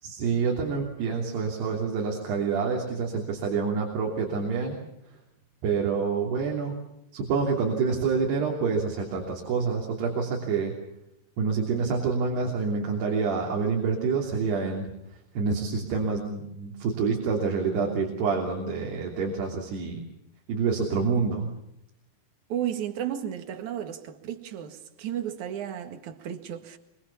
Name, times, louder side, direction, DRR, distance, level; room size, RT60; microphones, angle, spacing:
voice 1, 0.0-4.8 5.6-6.8 7.1-10.7 11.4-14.9 15.4-20.0 20.5-21.5, right 5 dB, 90° right, 5.2 m, -27 dB
voice 2, 22.5-26.8, right 10 dB, 55° right, 2.9 m, -33 dB
25.0 x 24.5 x 7.2 m
omnidirectional pair, 4.6 m